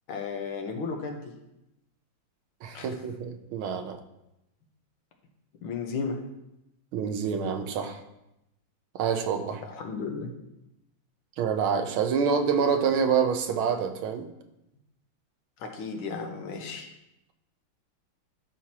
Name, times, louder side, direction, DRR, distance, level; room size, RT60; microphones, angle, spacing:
voice 1, 0.1-1.2 2.7-3.0 5.6-6.2 9.6-10.3 15.6-16.9, left 5 dB, 85° left, 4 dB, 1.9 m, -34 dB
voice 2, 2.6-4.0 6.9-8.0 8.9-9.6 11.4-14.3, right 6 dB, 85° right, 6 dB, 1.6 m, -27 dB
11.5 x 6.1 x 2.9 m, 0.89 s
omnidirectional pair, 2.2 m